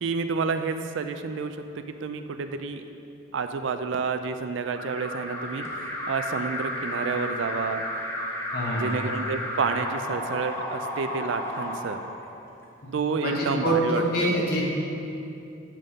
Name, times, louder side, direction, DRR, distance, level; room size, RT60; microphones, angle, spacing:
voice 1, 0.0-2.8 3.3-5.7 6.1-7.8 8.7-12.0 12.9-14.3, right 5 dB, 65° right, 8 dB, 0.4 m, -29 dB
Alarm, 4.7-12.6, left 1 dB, 10° left, 0.7 m, -33 dB
voice 2, 8.5-9.0 13.2-14.6, right 1 dB, 50° left, -3 dB, 1.2 m, -25 dB
7.5 x 3.7 x 6.5 m, 2.7 s
head